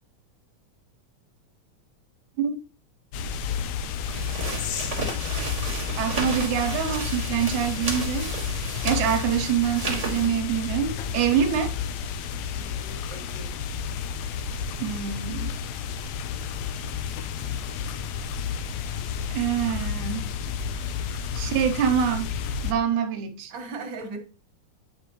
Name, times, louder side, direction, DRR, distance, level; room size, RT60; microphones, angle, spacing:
sound 1, 3.1-22.7, left 6 dB, 75° left, 1.7 m, -31 dB
sound 2, 4.0-10.3, right 3 dB, 20° right, 0.9 m, -33 dB
voice 1, 6.0-8.3 8.8-11.7 14.8-15.5 19.3-20.3 21.3-22.3 22.6-23.5, right 8 dB, 90° right, 2.2 m, -25 dB
voice 2, 12.6-13.5 20.8-20.9 23.5-24.2, right 3 dB, 45° right, 1.8 m, -39 dB
8.9 x 5.1 x 3.0 m
omnidirectional pair, 3.4 m